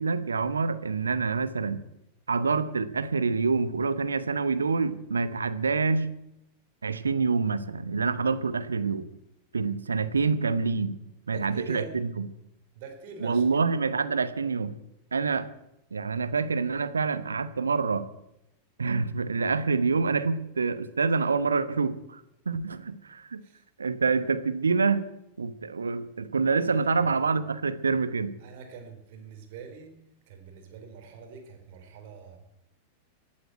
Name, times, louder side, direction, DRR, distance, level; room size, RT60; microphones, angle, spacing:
voice 1, 0.0-1.8 2.3-6.1 6.8-9.1 9.5-11.0 11.3-12.3 13.2-14.7 15.1-15.5 15.9-18.1 18.8-23.4 23.8-25.0 25.4-28.3, right 4 dB, 75° right, 13 dB, 1.1 m, -27 dB
voice 2, 11.3-12.0 12.8-13.7 23.4-23.6 26.6-27.2 28.4-29.9 30.3-32.4, right 5 dB, 50° right, 5 dB, 4.0 m, -44 dB
16.5 x 8.6 x 9.2 m, 0.84 s
figure-of-eight pair, 90°, 0 cm